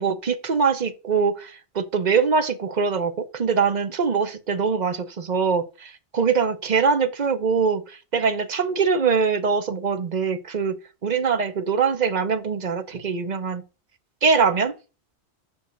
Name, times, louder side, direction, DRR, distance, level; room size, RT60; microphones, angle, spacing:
voice 1, 0.0-10.8 11.0-13.6 14.2-14.7, right 5 dB, 45° right, 0.8 m, -23 dB
6.3 x 5.3 x 6.5 m
omnidirectional pair, 1.2 m